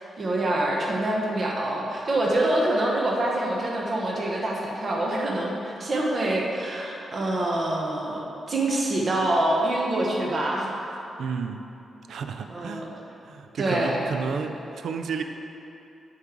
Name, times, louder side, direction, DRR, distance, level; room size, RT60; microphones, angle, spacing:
voice 1, 0.2-10.7 12.5-12.9 13.6-14.1, right 1 dB, 50° right, -2 dB, 0.9 m, -25 dB
voice 2, 11.2-11.6 12.1-12.9 13.2-15.2, right 5 dB, 80° right, 6 dB, 0.4 m, -31 dB
8.7 x 3.1 x 3.7 m, 2.8 s
cardioid pair, 65°, 0 cm